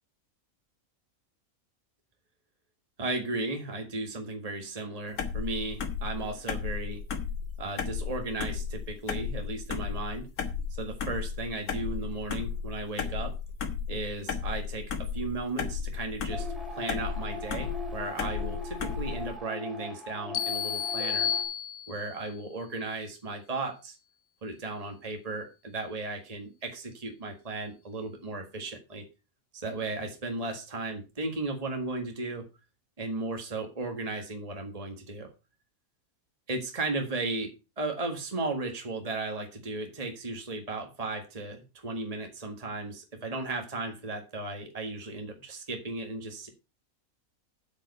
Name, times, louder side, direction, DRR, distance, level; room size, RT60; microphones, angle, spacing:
voice 1, 3.0-7.0 7.6-10.3 10.7-13.3 13.9-21.3 21.9-24.0 24.4-29.0 29.5-32.5 33.0-35.3 36.5-46.5, right 2 dB, 25° right, 3 dB, 1.9 m, -35 dB
sound 1, 5.2-19.3, left 6 dB, 90° left, 1.9 m, -34 dB
sound 2, 16.3-21.4, left 1 dB, ahead, 3.0 m, -40 dB
sound 3, 20.3-22.2, left 9 dB, 65° left, 1.2 m, -31 dB
8.9 x 7.7 x 5.5 m, 0.28 s
omnidirectional pair, 1.5 m